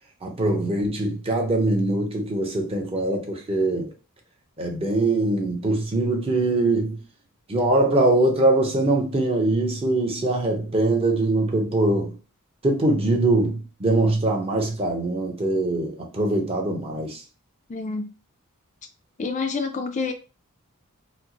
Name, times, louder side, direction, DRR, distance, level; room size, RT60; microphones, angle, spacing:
voice 1, 0.2-3.9 4.6-7.0 7.5-12.1 12.6-17.2, right 2 dB, 25° right, 0.8 m, -22 dB
voice 2, 17.7-18.1 19.2-20.1, left 4 dB, 35° left, 0.4 m, -28 dB
4.2 x 2.0 x 2.8 m
head